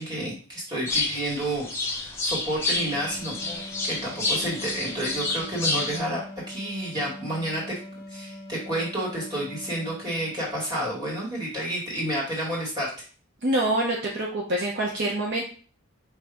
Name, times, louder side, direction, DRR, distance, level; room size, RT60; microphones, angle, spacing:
voice 1, 0.0-7.7 8.1-12.9, right 1 dB, 20° right, -5 dB, 1.6 m, -30 dB
sound 1, 0.9-6.0, left 2 dB, 10° left, 0.7 m, -29 dB
sound 2, 2.7-10.9, left 1 dB, 45° left, 0.6 m, -43 dB
voice 2, 13.4-15.5, right 1 dB, 50° right, -1 dB, 0.6 m, -26 dB
4.9 x 2.7 x 3.4 m, 0.40 s
head